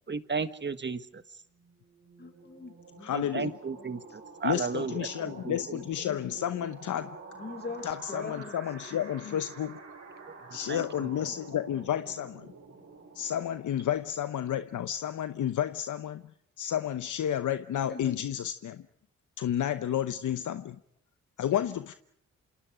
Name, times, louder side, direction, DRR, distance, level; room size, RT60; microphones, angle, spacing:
voice 1, 0.1-1.2 3.1-4.0 4.4-5.1 5.5-5.8 10.7-10.8, right 5 dB, 35° right, 1.7 m, -33 dB
sound 1, 1.5-14.2, right 4 dB, 60° right, 5.5 m, -48 dB
voice 2, 2.2-3.3 3.7-4.2 5.2-5.7 7.3-8.6 17.8-18.2, left 3 dB, 35° left, 6.8 m, -43 dB
voice 3, 3.0-3.5 4.4-7.2 7.8-9.8 10.5-12.5 13.1-16.2 16.6-18.8 19.4-20.8 21.4-21.9, left 10 dB, 80° left, 0.9 m, -31 dB
28.5 x 26.5 x 5.0 m
cardioid pair, 75°, 30 cm